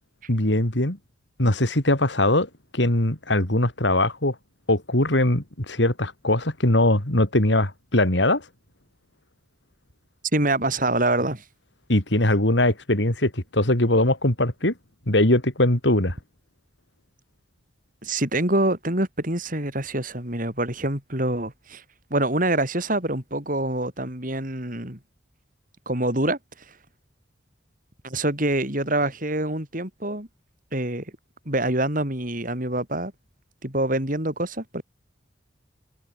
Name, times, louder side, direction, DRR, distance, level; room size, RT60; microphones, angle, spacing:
voice 1, 0.3-1.0 1.4-4.4 4.7-8.4 11.9-14.7 15.1-16.2, left 1 dB, 70° left, 4.0 m, -21 dB
voice 2, 10.3-11.4 18.0-21.8 22.1-25.0 25.9-26.4 28.0-30.3 30.7-31.1 31.5-33.1 33.6-34.8, right 1 dB, 45° right, 5.9 m, -25 dB
head